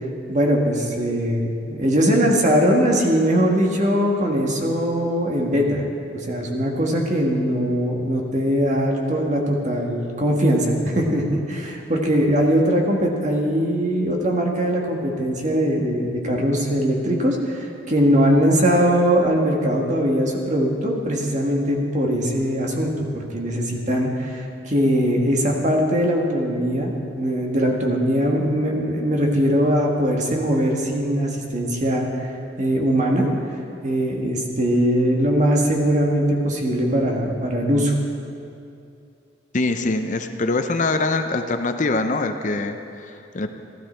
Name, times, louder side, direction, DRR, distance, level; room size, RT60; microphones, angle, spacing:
voice 1, 0.3-5.8 6.1-32.3 32.6-33.3 33.8-37.9, equal, 40° right, 0 dB, 1.6 m, -21 dB
voice 2, 39.5-43.5, left 3 dB, 45° left, 7 dB, 0.6 m, -24 dB
15.5 x 12.5 x 4.4 m, 2.5 s
head